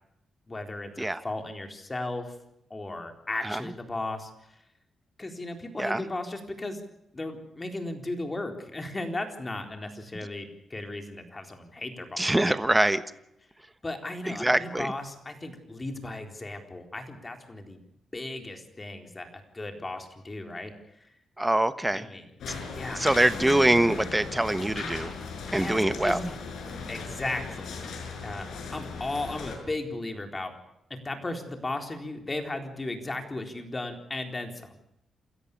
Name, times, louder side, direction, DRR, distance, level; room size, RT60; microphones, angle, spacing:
voice 1, 0.5-2.4 2.7-4.6 5.2-6.8 7.1-12.5 13.8-17.8 18.1-21.1 21.9-22.3 22.7-23.1 23.4-23.5 25.5-26.2 26.9-27.7 28.2-30.5 30.9-34.8, left 2 dB, 25° left, 5 dB, 4.0 m, -36 dB
voice 2, 12.2-13.0 14.3-14.9 21.4-22.0 22.9-25.1 25.5-26.2, right 1 dB, 10° right, 12 dB, 1.2 m, -24 dB
sound 1, 22.4-29.6, left 4 dB, 80° left, 5.9 m, -38 dB
28.5 x 14.0 x 8.5 m, 0.80 s
cardioid pair, 95°, 0 cm